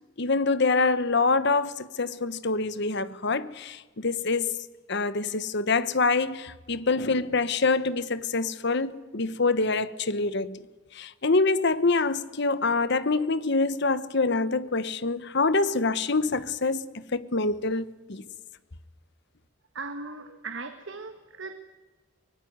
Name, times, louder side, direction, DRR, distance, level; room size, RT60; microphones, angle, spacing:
voice 1, 0.2-4.5 4.9-10.6 10.9-18.2, left 3 dB, 55° left, 1.1 m, -25 dB
voice 2, 19.7-21.6, right 3 dB, 60° right, 1.6 m, -38 dB
24.0 x 20.0 x 9.4 m
head